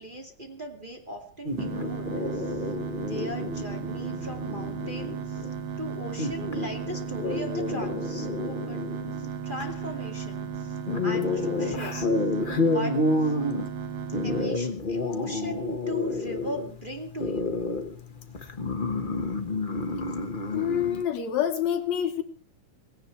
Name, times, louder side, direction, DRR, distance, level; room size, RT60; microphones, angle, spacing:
voice 1, 0.0-2.6 3.1-5.5 5.8-8.8 9.2-10.8 11.0-12.1 12.6-13.3 14.2-17.6, equal, 15° right, 2 dB, 2.3 m, -38 dB
sound 1, 1.4-21.0, left 2 dB, 85° left, 0.4 m, -30 dB
sound 2, 1.5-14.5, right 7 dB, 60° right, 2.1 m, -35 dB
voice 2, 20.5-22.2, left 9 dB, 70° left, 7 dB, 2.3 m, -27 dB
18.5 x 17.0 x 4.6 m, 0.41 s
omnidirectional pair, 3.5 m